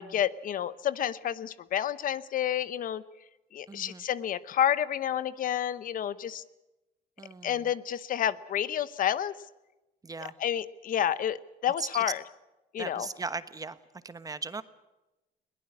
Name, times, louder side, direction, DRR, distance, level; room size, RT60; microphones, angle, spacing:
voice 1, 0.0-3.0 3.5-6.4 7.4-9.3 10.2-12.2 12.7-13.1, left 10 dB, 55° left, 16 dB, 0.9 m, -30 dB
voice 2, 3.7-4.0 7.2-7.6 10.0-10.3 11.8-12.0 12.8-13.8 14.0-14.6, right 4 dB, 20° right, 13 dB, 1.1 m, -38 dB
21.5 x 19.0 x 8.5 m, 1.0 s
cardioid pair, 110°, 17 cm